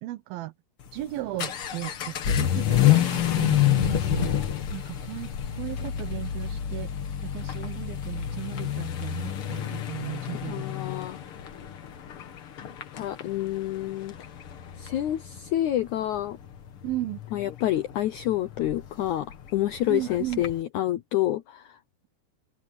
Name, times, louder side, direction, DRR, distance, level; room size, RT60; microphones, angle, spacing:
voice 1, 0.0-0.5 0.9-4.3 4.7-6.9 7.3-10.6 16.8-17.2 19.9-20.4, right 17 dB, 75° right, 2.9 m, -35 dB
Vehicle / Accelerating revving vroom, 0.8-20.6, left 11 dB, 55° left, 1.6 m, -29 dB
voice 2, 10.5-11.2 12.9-14.1 14.8-16.4 17.3-19.3 19.5-21.8, left 13 dB, 75° left, 1.8 m, -28 dB
open air
omnidirectional pair, 4.3 m